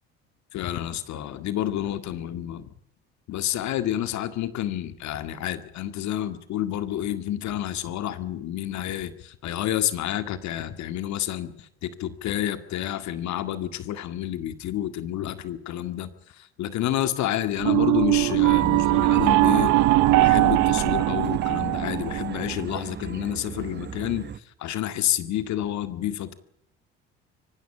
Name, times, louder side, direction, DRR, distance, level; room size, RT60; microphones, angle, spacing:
voice 1, 0.5-2.7 3.3-19.7 20.1-26.3, left 12 dB, 65° left, 10 dB, 2.0 m, -29 dB
sound 1, 17.6-22.6, right 18 dB, 70° right, 0.9 m, -21 dB
sound 2, 18.5-24.4, right 7 dB, 35° right, 1.1 m, -34 dB
24.5 x 15.5 x 8.7 m, 0.75 s
hypercardioid pair, 70°, 31 cm